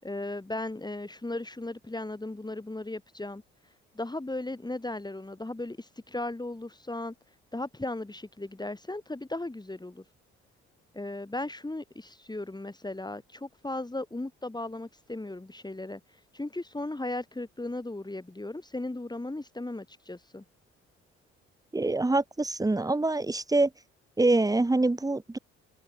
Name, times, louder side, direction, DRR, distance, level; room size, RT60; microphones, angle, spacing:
voice 1, 0.0-3.4 4.0-7.1 7.5-10.0 10.9-16.0 16.3-20.4, left 2 dB, 10° left, 5.4 m, -36 dB
voice 2, 21.7-23.7 24.2-25.4, right 2 dB, 10° right, 1.5 m, -25 dB
figure-of-eight pair, 45°, 33 cm